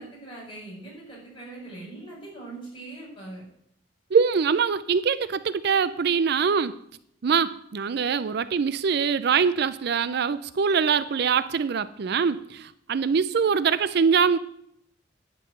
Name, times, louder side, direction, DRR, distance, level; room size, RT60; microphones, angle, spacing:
voice 1, 0.0-3.4, right 2 dB, 25° left, -5 dB, 5.7 m, -41 dB
voice 2, 4.1-6.7 7.2-14.4, right 6 dB, 60° right, 15 dB, 0.4 m, -23 dB
11.0 x 5.4 x 7.8 m, 0.71 s
head